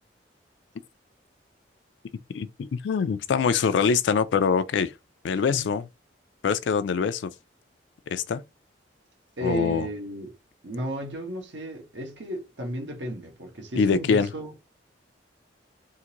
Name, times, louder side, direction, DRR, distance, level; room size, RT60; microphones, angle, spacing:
voice 1, 2.3-4.9 5.2-5.8 6.4-7.3 8.1-8.4 9.4-9.9 13.8-14.3, left 6 dB, 75° left, 0.4 m, -24 dB
voice 2, 5.3-5.7 9.4-10.3 10.6-14.5, right 1 dB, 85° right, 1.2 m, -33 dB
3.8 x 2.5 x 2.9 m
head